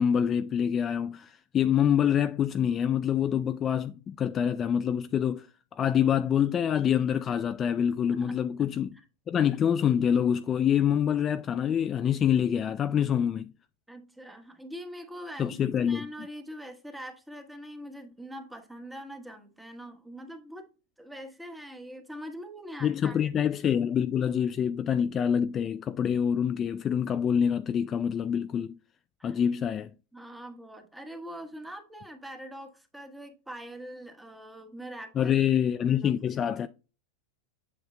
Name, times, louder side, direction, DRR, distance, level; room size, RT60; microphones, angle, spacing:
voice 1, 0.0-5.5 5.7-9.0 9.3-13.5 15.4-16.1 22.8-28.8 29.2-29.9 35.2-36.7, left 8 dB, 30° left, 0.3 m, -26 dB
voice 2, 8.1-8.5 13.9-20.7 21.0-23.5 29.2-29.4 30.1-35.4 35.9-36.1, equal, 5° right, 1.2 m, -43 dB
7.9 x 6.5 x 2.2 m
supercardioid pair, 125°, 0 cm